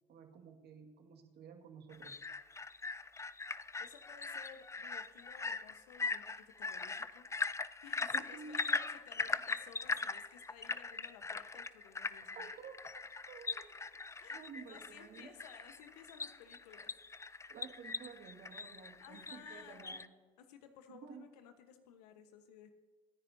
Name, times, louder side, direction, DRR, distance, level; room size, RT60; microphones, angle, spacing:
voice 1, 0.1-2.2 8.1-8.8 12.3-13.8 14.3-15.4 17.5-20.0 20.9-21.3, right 6 dB, 55° right, 3 dB, 2.0 m, -52 dB
sound 1, 1.9-20.1, left 4 dB, 15° left, 0.5 m, -41 dB
voice 2, 3.8-12.5 13.2-13.3 14.2-16.9 19.0-20.0 20.4-22.7, left 8 dB, 85° left, 8 dB, 1.2 m, -57 dB
26.0 x 9.8 x 2.8 m, 1.5 s
hypercardioid pair, 65°, 20 cm